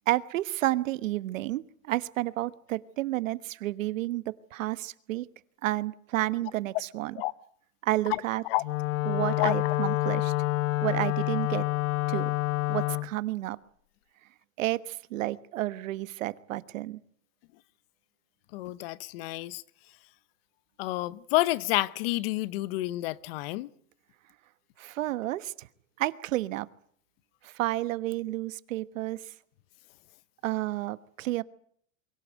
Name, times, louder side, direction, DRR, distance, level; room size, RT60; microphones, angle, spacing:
voice 1, 0.1-5.3 5.6-7.2 7.8-8.4 9.0-10.3 10.8-11.7 12.1-12.3 12.7-13.6 14.6-17.0 24.8-25.7 26.0-26.7 27.4-29.3 30.4-31.4, right 16 dB, 75° right, 1.3 m, -31 dB
voice 2, 8.1-8.6 9.4-9.5 18.5-19.6 20.8-23.7, left 18 dB, 45° left, 0.9 m, -29 dB
Wind instrument woodwind instrument, 8.6-13.1, left 19 dB, 80° left, 0.9 m, -28 dB
23.5 x 16.5 x 9.3 m
supercardioid pair, 165°, 39 cm